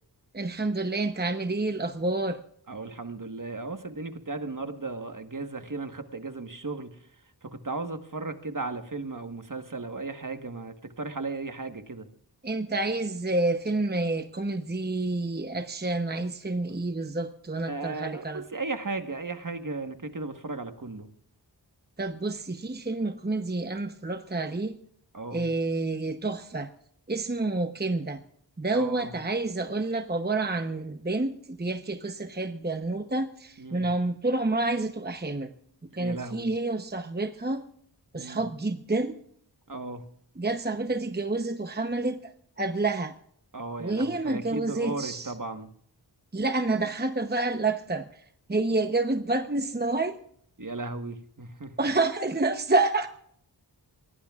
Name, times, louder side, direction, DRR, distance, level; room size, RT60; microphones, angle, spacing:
voice 1, 0.3-2.4 12.4-18.4 22.0-24.8 25.3-26.7 27.1-28.2 28.6-35.5 35.9-37.6 38.1-39.2 40.4-42.2 42.6-43.1 43.8-45.3 46.3-48.0 48.5-50.2 51.8-53.1, right 2 dB, 25° right, 7 dB, 0.9 m, -28 dB
voice 2, 2.7-7.0 7.4-12.1 17.7-21.1 25.1-25.5 28.7-29.1 33.6-33.9 36.0-36.5 38.1-38.4 39.7-40.0 43.5-45.7 50.6-51.7, right 3 dB, 50° right, 7 dB, 1.4 m, -36 dB
24.5 x 18.0 x 2.4 m, 0.64 s
wide cardioid pair, 50°, 42 cm